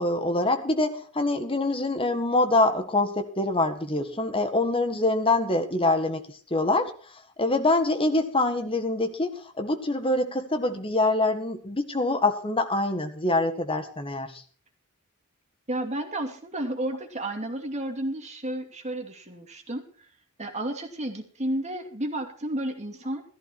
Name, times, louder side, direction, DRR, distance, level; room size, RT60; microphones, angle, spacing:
voice 1, 0.0-6.2 6.5-6.9 7.4-14.4, left 2 dB, 25° left, 7 dB, 1.7 m, -25 dB
voice 2, 15.7-19.8 20.4-23.2, right 1 dB, 30° right, 4 dB, 2.7 m, -32 dB
14.5 x 14.5 x 4.5 m, 0.43 s
head